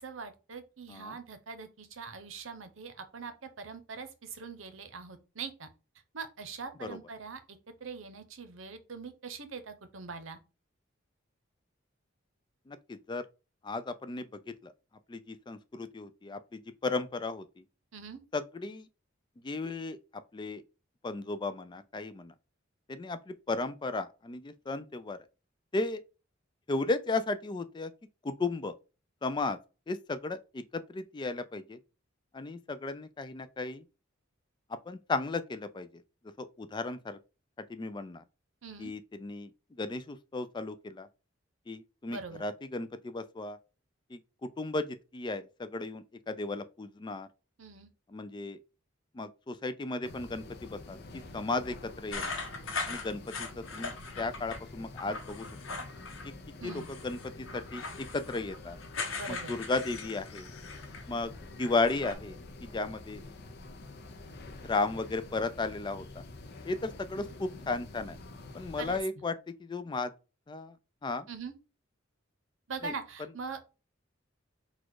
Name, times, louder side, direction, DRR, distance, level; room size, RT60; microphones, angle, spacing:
voice 1, 0.0-5.7 6.1-10.4 17.9-18.2 38.6-38.9 42.1-42.4 47.6-47.9 56.6-56.9 59.1-59.5 68.8-69.0 71.3-71.5 72.7-73.6, right 5 dB, 75° right, 0.8 m, -42 dB
voice 2, 12.7-13.2 13.6-14.3 14.6-14.7 15.1-17.4 18.3-18.9 19.4-20.6 21.0-22.3 22.9-25.2 25.7-26.0 26.7-27.9 28.2-28.7 29.2-29.6 29.9-31.8 32.3-33.8 34.7-36.0 36.4-37.2 37.7-38.2 38.8-39.5 39.8-41.1 41.7-43.6 44.1-47.3 48.1-48.6 49.1-51.0 51.3-52.4 52.9-55.5 56.6-58.8 59.3-60.5 61.1-61.3 61.6-63.2 64.6-66.2 66.7-68.2 68.5-70.1 70.5-70.7 71.0-71.3 72.8-72.9, left 3 dB, 20° left, 0.4 m, -35 dB
sound 1, 50.0-69.0, left 2 dB, 55° left, 0.7 m, -47 dB
sound 2, 52.1-54.6 55.0-56.3 56.6-61.1 61.4-62.1, left 4 dB, 70° left, 1.1 m, -40 dB
4.1 x 2.4 x 4.7 m
head